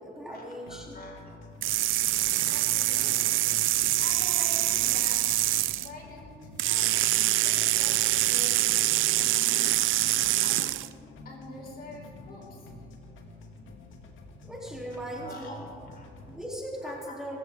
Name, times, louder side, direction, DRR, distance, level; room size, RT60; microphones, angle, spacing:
voice 1, 0.0-1.0 14.4-15.6 16.3-17.4, right 1 dB, 5° right, -4 dB, 3.7 m, -38 dB
sound 1, 0.7-16.7, left 2 dB, 80° left, 2.1 m, -48 dB
voice 2, 0.7-1.5 2.4-3.5 3.8-5.5 5.8-8.6 9.2-10.9 11.2-12.7 15.2-16.1 16.8-17.1, left 2 dB, 50° left, 0 dB, 4.5 m, -45 dB
sound 2, 1.6-5.9 6.6-10.9, right 15 dB, 85° right, 0.5 m, -25 dB
25.0 x 15.0 x 3.9 m, 2.3 s
cardioid pair, 90°, 20 cm